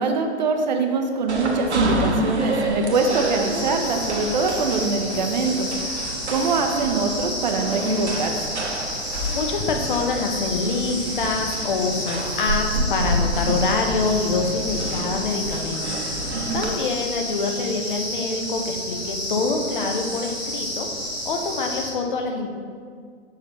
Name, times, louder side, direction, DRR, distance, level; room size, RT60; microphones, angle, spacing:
voice 1, 0.0-5.7 6.3-8.4 16.3-16.6, right 4 dB, 40° right, 5 dB, 0.6 m, -23 dB
sound 1, 1.3-16.7, right 1 dB, 70° right, 1.0 m, -28 dB
sound 2, 2.9-21.9, equal, ahead, 1.4 m, -31 dB
voice 2, 9.3-16.3 16.5-20.9 21.2-22.5, left 4 dB, 45° left, 3 dB, 0.7 m, -25 dB
6.6 x 5.5 x 3.1 m, 2.1 s
figure-of-eight pair, 120°, 35 cm